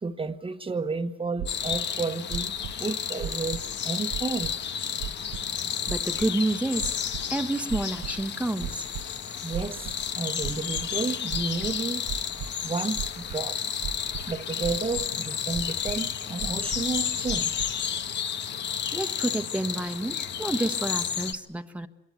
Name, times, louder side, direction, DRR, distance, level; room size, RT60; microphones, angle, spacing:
voice 1, 0.0-2.5 2.8-4.5 9.4-9.9 10.1-12.0 12.6-13.6 14.3-17.7, right 4 dB, 25° right, 1.3 m, -31 dB
sound 1, 1.4-21.3, left 8 dB, 65° left, 1.3 m, -31 dB
sound 2, 1.4-1.8 2.3-2.7 3.2-3.7 4.1-4.5 5.0-5.4 5.9-6.3 6.8-7.2 7.7-8.2 8.6-9.1 9.5-10.1 10.4-10.9 11.3-12.5 13.0-13.4 13.8-14.3 14.6-15.1 15.5-16.0 16.4-16.9 17.3-17.7, right 10 dB, 90° right, 0.9 m, -35 dB
voice 2, 5.9-6.9 7.3-8.9 12.4-12.5 18.9-21.9, right 2 dB, 5° right, 1.4 m, -29 dB
26.0 x 22.5 x 9.4 m
cardioid pair, 90°, 20 cm